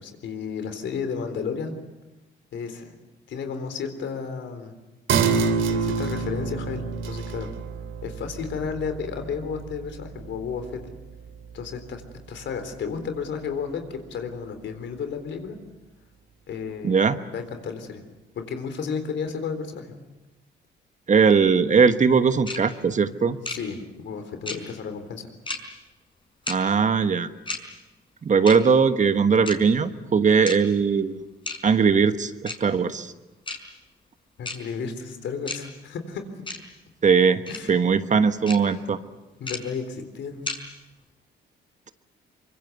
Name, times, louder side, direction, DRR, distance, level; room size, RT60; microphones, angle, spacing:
voice 1, 0.0-1.8 2.5-3.0 3.3-4.8 5.7-7.5 8.0-10.8 11.5-12.0 12.3-15.6 16.5-18.0 18.4-19.9 23.5-25.3 34.4-36.2 37.5-37.8 39.4-40.4, left 6 dB, 70° left, 8 dB, 3.8 m, -32 dB
sound 1, 5.1-12.1 12.5-12.6, right 5 dB, 75° right, 2.8 m, -28 dB
voice 2, 16.8-17.2 21.1-23.4 26.5-27.3 28.2-31.2 31.6-33.1 37.0-37.4 37.7-39.0, right 5 dB, 40° right, 10 dB, 1.3 m, -20 dB
sound 2, 22.5-22.6 23.4-23.6 24.5-24.6 25.5-25.6 26.5-26.6 27.5-27.6 28.5-28.6 29.5-29.6 30.5-30.6 31.5-31.6 32.5-32.6 33.5-33.6 34.4-34.6 35.5-35.6 36.5-36.6 37.5-37.6 38.5-38.6 39.5-39.6 40.5-40.6, left 3 dB, 25° left, 5.0 m, -31 dB
24.5 x 23.5 x 8.2 m, 1.1 s
cardioid pair, 90°, 20 cm